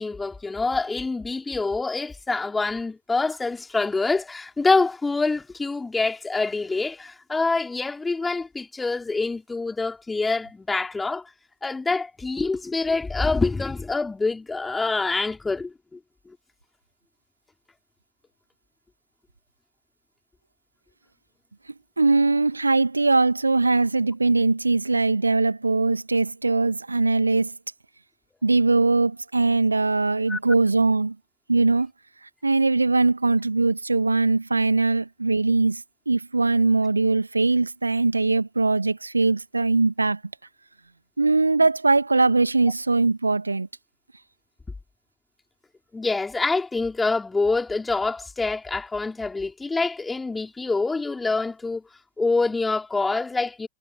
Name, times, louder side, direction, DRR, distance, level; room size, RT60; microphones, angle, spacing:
voice 1, 0.0-11.3 11.6-16.0 30.3-30.4 45.9-51.8 52.2-53.7, left 3 dB, 10° left, 5.1 m, -26 dB
voice 2, 22.0-27.5 28.4-31.2 31.5-31.9 32.4-40.2 41.2-43.7, right 3 dB, 80° right, 2.1 m, -21 dB
figure-of-eight pair, 90°, 0 cm